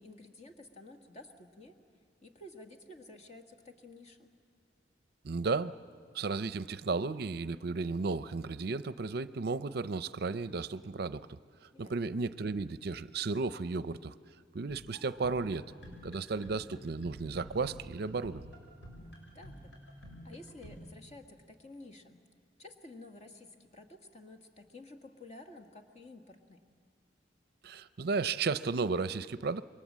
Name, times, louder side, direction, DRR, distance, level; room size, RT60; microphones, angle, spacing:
voice 1, 0.0-1.8 2.2-4.3 11.7-12.0 19.0-19.7 20.2-22.2 22.6-26.6, left 2 dB, 40° left, 5 dB, 1.7 m, -52 dB
voice 2, 5.2-5.7 6.1-11.4 11.8-14.1 14.5-15.7 16.0-18.5 27.6-29.6, right 4 dB, 60° right, 14 dB, 0.5 m, -34 dB
sound 1, 14.7-20.8, equal, 70° left, 6.7 m, -50 dB
27.5 x 23.0 x 7.4 m, 2.3 s
head